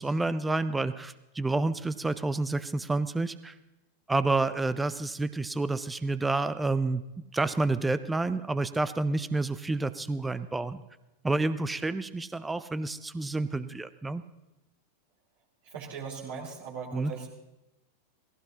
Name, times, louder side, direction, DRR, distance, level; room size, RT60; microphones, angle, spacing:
voice 1, 0.0-3.5 4.1-7.0 7.3-10.8 11.2-14.2 16.9-17.1, right 2 dB, 10° right, 14 dB, 0.5 m, -29 dB
voice 2, 15.7-17.3, right 5 dB, 60° right, -6 dB, 2.7 m, -39 dB
18.5 x 16.0 x 2.9 m, 0.94 s
figure-of-eight pair, 90°, 0 cm